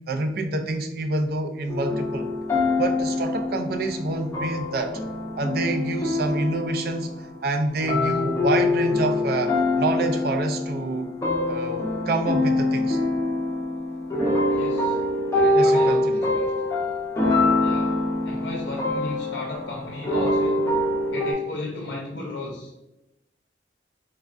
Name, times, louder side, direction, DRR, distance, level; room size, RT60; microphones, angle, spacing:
voice 1, 0.0-2.3 2.8-5.0 5.4-11.2 11.5-13.0 15.5-16.3, right 2 dB, 55° right, 5 dB, 0.4 m, -27 dB
sound 1, 1.7-7.4 7.8-21.3, left 2 dB, 15° left, 0.6 m, -24 dB
voice 2, 14.5-15.0 15.3-16.5 17.6-18.0 18.2-20.6 21.1-22.8, left 2 dB, 65° left, -1 dB, 0.5 m, -35 dB
3.4 x 3.3 x 2.4 m, 0.94 s
head